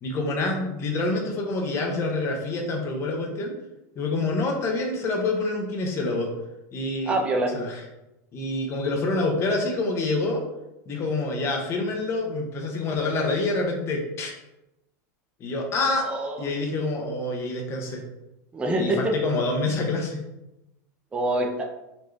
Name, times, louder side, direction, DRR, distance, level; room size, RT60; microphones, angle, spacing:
voice 1, 0.0-3.5 4.0-6.3 6.7-7.1 7.5-7.8 8.3-10.4 10.9-14.3 15.4-16.1 16.4-18.0 18.8-20.2, left 2 dB, 30° left, 2 dB, 0.9 m, -27 dB
voice 2, 7.1-7.5 16.0-16.4 18.5-19.1 21.1-21.6, right 1 dB, 15° right, 2 dB, 0.5 m, -25 dB
4.2 x 3.0 x 3.3 m, 0.92 s
supercardioid pair, 145°, 9 cm